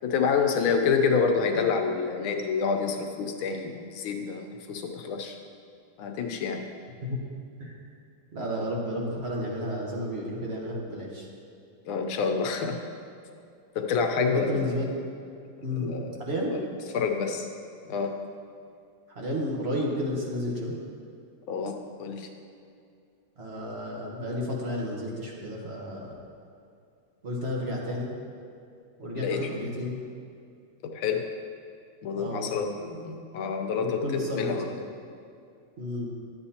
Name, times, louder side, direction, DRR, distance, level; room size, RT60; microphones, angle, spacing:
voice 1, 0.0-5.4 6.0-6.6 11.8-12.8 13.7-14.8 15.8-16.2 16.5-16.7 16.9-17.5 17.8-18.1 21.5-22.3 29.0-29.5 30.8-31.2 32.0-34.0 34.3-34.7, left 5 dB, 80° left, 4 dB, 1.5 m, -28 dB
voice 2, 8.3-11.3 14.3-14.9 15.6-16.5 19.1-20.7 23.4-26.1 27.2-28.1 29.0-30.0 32.2-32.6 33.8-34.8 35.8-36.1, left 1 dB, 35° right, -3 dB, 1.2 m, -32 dB
11.5 x 7.9 x 2.8 m, 2.4 s
omnidirectional pair, 2.2 m